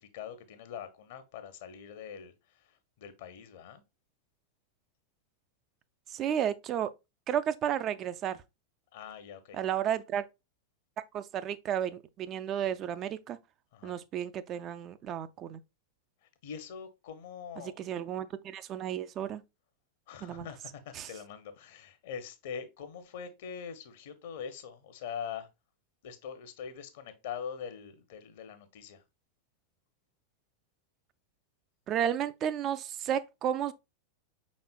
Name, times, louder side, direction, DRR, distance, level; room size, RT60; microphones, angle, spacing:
voice 1, 0.1-2.3 3.0-3.8 8.9-9.6 13.7-13.9 16.4-17.8 20.1-25.5 26.0-29.0, left 7 dB, 55° left, 0.8 m, -43 dB
voice 2, 6.1-6.9 7.3-8.4 9.5-10.3 11.1-13.4 13.8-15.6 17.6-19.4 20.2-20.5 20.9-21.1 31.9-33.7, right 9 dB, 30° right, 0.3 m, -32 dB
5.4 x 4.2 x 2.3 m
figure-of-eight pair, 90°, 0 cm